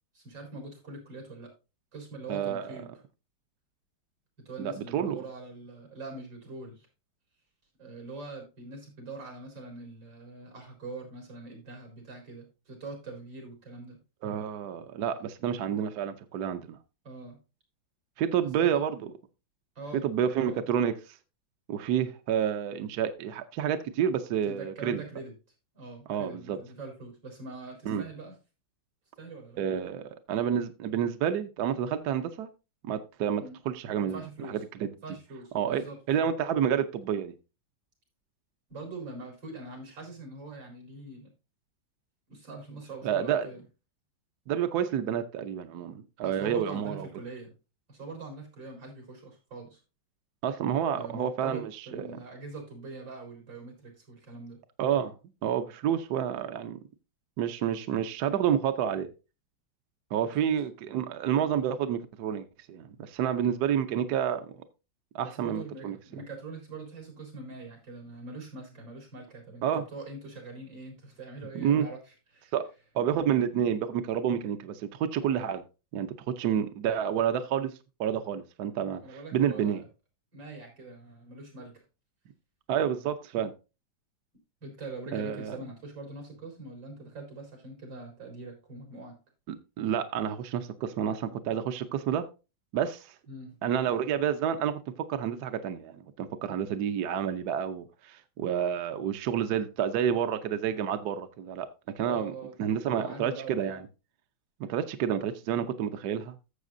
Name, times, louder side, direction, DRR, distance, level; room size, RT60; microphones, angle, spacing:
voice 1, 0.1-1.5 1.9-2.9 4.4-6.9 7.8-14.0 17.0-17.4 18.6-18.7 19.8-20.1 20.4-20.6 24.5-25.3 25.7-28.4 29.2-29.6 33.4-33.6 34.1-34.6 35.0-36.0 38.7-41.3 42.3-43.6 46.2-47.5 47.9-49.8 50.9-54.6 60.4-60.5 65.2-72.0 72.3-72.5 78.9-79.8 80.3-81.8 84.6-89.2 93.3-93.6 102.0-102.5 103.0-103.8, right 3 dB, 90° right, 4.7 m, -43 dB
voice 2, 2.3-2.7 4.6-5.2 14.2-16.8 18.2-19.1 20.0-20.9 21.7-25.0 26.1-26.6 27.9-28.0 29.6-32.5 32.8-34.2 34.5-34.9 35.5-37.3 43.0-43.5 44.5-47.1 50.4-52.2 54.8-55.1 55.4-56.8 57.4-59.1 60.1-64.5 65.1-66.2 69.6-69.8 71.5-71.9 72.5-72.7 72.9-75.6 75.9-76.1 76.4-77.7 78.0-79.0 79.3-79.8 82.7-83.5 85.1-85.6 89.5-92.3 92.7-93.1 93.6-94.8 95.1-101.7 102.0-102.3 102.6-103.8 104.6-106.3, right 9 dB, 65° right, 1.2 m, -29 dB
13.5 x 7.3 x 2.6 m
omnidirectional pair, 2.0 m